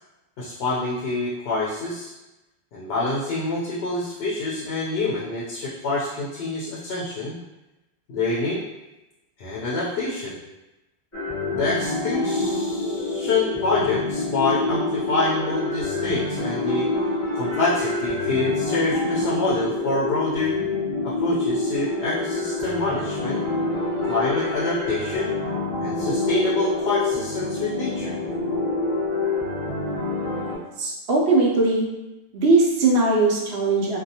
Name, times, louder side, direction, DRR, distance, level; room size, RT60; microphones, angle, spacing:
voice 1, 0.4-2.1 2.7-7.4 8.1-8.6 9.4-10.4 11.5-16.9 17.3-20.6 21.0-23.4 24.1-25.3 25.8-28.2, left 2 dB, 75° left, -5 dB, 0.8 m, -26 dB
sound 1, 11.1-30.6, left 2 dB, 15° left, 0.7 m, -26 dB
voice 2, 30.4-31.9 32.3-34.0, right 3 dB, 75° right, -3 dB, 0.9 m, -20 dB
2.6 x 2.3 x 2.7 m, 1.0 s
omnidirectional pair, 1.1 m